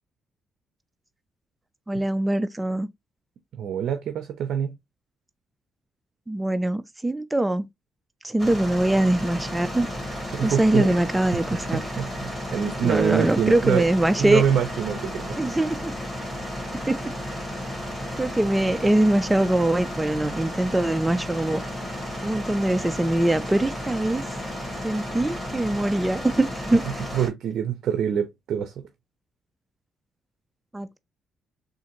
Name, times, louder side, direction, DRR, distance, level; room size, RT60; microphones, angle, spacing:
voice 1, 1.9-2.9 6.3-7.7 8.2-9.9 10.4-11.8 12.8-14.4 15.4-15.9 16.9-17.0 18.2-21.6 22.2-24.3 24.8-26.8 30.7-31.0, right 1 dB, 10° right, 0.3 m, -23 dB
voice 2, 3.6-4.8 10.3-11.0 11.3-11.4 11.7-13.8 14.2-15.4 27.1-28.8, right 8 dB, 70° right, 0.5 m, -25 dB
sound 1, 8.4-27.3, equal, 10° left, 2.2 m, -33 dB
3.7 x 2.5 x 2.8 m
cardioid pair, 90°, 0 cm